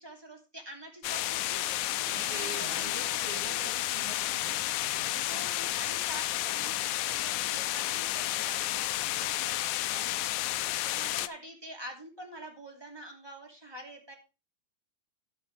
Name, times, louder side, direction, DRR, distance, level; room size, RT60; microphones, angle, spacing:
voice 1, 0.0-3.6 5.2-10.6 10.8-14.1, right 1 dB, 10° right, 3 dB, 2.0 m, -47 dB
sound 1, 1.0-11.3, left 15 dB, 80° left, 1.7 m, -31 dB
voice 2, 2.0-5.5 8.9-9.5 10.5-10.8, right 4 dB, 45° right, 1 dB, 4.1 m, -46 dB
11.0 x 8.9 x 3.3 m, 0.30 s
omnidirectional pair, 4.1 m